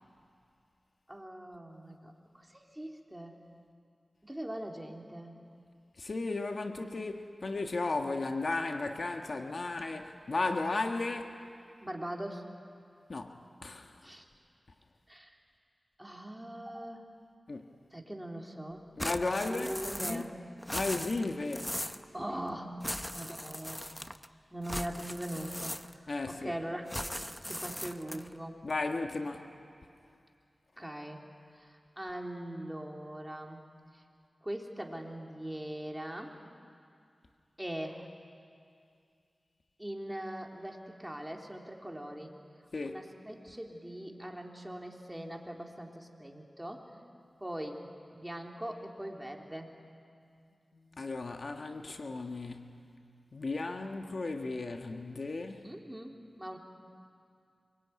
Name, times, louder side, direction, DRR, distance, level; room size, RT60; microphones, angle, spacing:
voice 1, 1.1-3.4 4.2-5.4 11.8-12.4 14.0-14.2 15.1-15.4 16.0-17.0 17.9-18.9 19.4-20.3 22.1-22.8 23.1-23.9 24.5-26.8 27.5-28.6 30.8-31.3 31.5-33.6 33.9-34.0 34.4-36.4 37.6-38.1 39.8-42.3 42.8-47.0 47.4-47.9 48.1-49.8 55.6-56.6, right 1 dB, 10° right, 3.7 m, -41 dB
voice 2, 6.0-11.4 13.1-14.1 17.5-17.7 19.0-20.3 20.7-21.8 26.1-26.5 28.6-29.5 42.7-43.0 50.3-50.4 50.7-52.8 53.3-55.7, left 3 dB, 65° left, 1.5 m, -35 dB
sound 1, 19.0-20.3 20.6-22.1 22.8-24.3 24.6-26.1 26.9-28.3, left 1 dB, 15° left, 1.0 m, -39 dB
26.0 x 23.5 x 9.5 m
cardioid pair, 45°, 0 cm